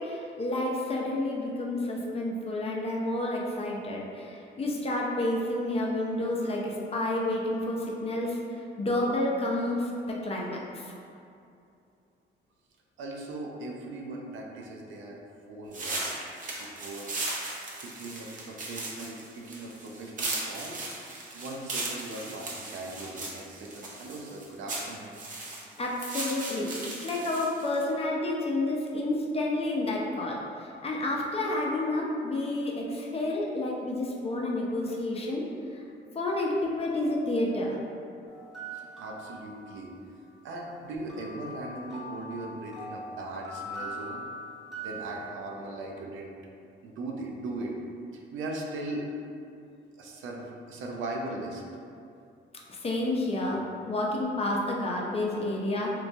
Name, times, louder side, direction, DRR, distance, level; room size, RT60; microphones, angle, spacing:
voice 1, 0.0-8.4 8.8-9.9 10.2-10.9 25.8-35.4 35.7-35.8 36.1-37.8 52.7-55.9, left 1 dB, 30° left, -2 dB, 0.5 m, -30 dB
voice 2, 13.0-15.2 15.5-16.1 16.6-17.1 17.8-20.8 21.3-25.1 38.7-39.9 40.4-44.2 44.8-46.3 46.8-47.8 48.3-49.0 50.0-51.6, right 2 dB, 80° right, -1 dB, 0.5 m, -39 dB
sound 1, 15.7-27.8, right 2 dB, 40° right, 0.6 m, -37 dB
sound 2, 38.3-40.1 41.1-45.4, right 1 dB, ahead, 0.8 m, -41 dB
3.0 x 2.2 x 2.5 m, 2.6 s
cardioid pair, 90°, 20 cm